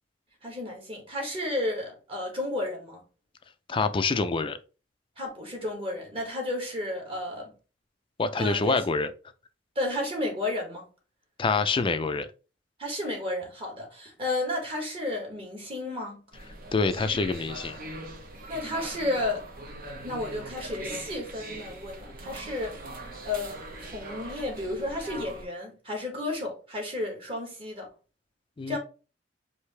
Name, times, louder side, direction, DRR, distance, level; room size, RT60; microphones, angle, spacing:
voice 1, 0.4-3.0 5.2-7.5 8.4-8.8 9.7-10.9 12.8-16.2 18.5-19.4 20.0-23.0 23.2-23.6 23.8-27.9 28.7-28.8, left 1 dB, 30° right, 1.6 m, -32 dB
voice 2, 3.7-4.6 8.2-9.1 11.4-12.3 16.7-17.8 28.6-28.8, left 4 dB, 30° left, 0.4 m, -26 dB
sound 1, 16.3-25.4, right 2 dB, 50° right, 0.9 m, -41 dB
4.8 x 2.7 x 3.2 m
head